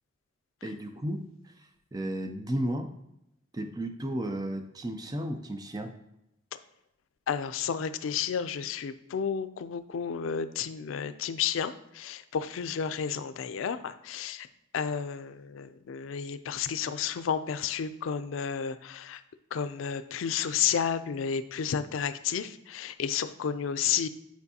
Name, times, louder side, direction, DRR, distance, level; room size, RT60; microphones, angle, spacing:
voice 1, 0.6-1.5 1.9-2.9 3.5-5.9, right 1 dB, 20° right, 6 dB, 0.5 m, -33 dB
voice 2, 7.3-14.5 14.7-19.2 19.5-24.1, left 7 dB, 90° left, 12 dB, 0.4 m, -31 dB
9.3 x 4.5 x 2.8 m, 0.83 s
head